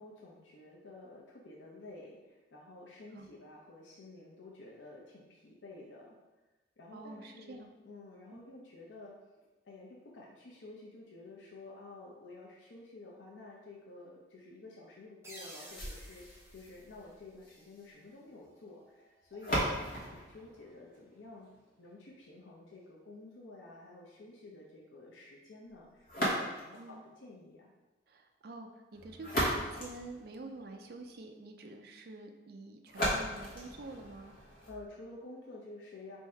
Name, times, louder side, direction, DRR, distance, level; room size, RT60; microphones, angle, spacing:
voice 1, 0.0-6.2 6.8-9.2 9.6-21.5 21.8-27.7 34.6-36.2, left 2 dB, 85° left, -3 dB, 0.7 m, -51 dB
voice 2, 6.9-7.7 8.3-8.4 26.8-27.0 28.1-34.3, right 2 dB, 55° right, 4 dB, 0.4 m, -48 dB
sound 1, 15.2-17.8, right 1 dB, 15° right, 0.6 m, -53 dB
sound 2, 15.7-21.7 26.0-26.9 28.9-30.9 32.9-34.9, equal, 50° left, 1.2 m, -37 dB
3.6 x 2.7 x 4.3 m, 1.1 s
head